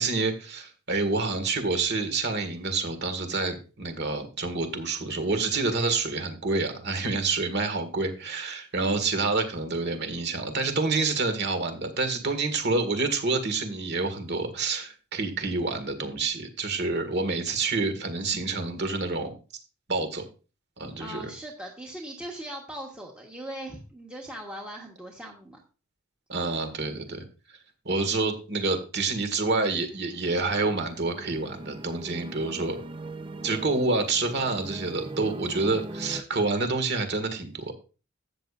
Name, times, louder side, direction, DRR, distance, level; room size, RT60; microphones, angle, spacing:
voice 1, 0.0-19.3 19.9-20.2 20.8-21.3 26.3-27.2 27.9-32.8 33.4-37.7, right 3 dB, 50° right, 8 dB, 1.8 m, -28 dB
voice 2, 21.0-25.6, right 1 dB, 5° right, -1 dB, 1.3 m, -39 dB
sound 1, 29.7-36.2, right 2 dB, 25° right, 0.5 m, -40 dB
13.0 x 8.5 x 2.5 m, 0.33 s
head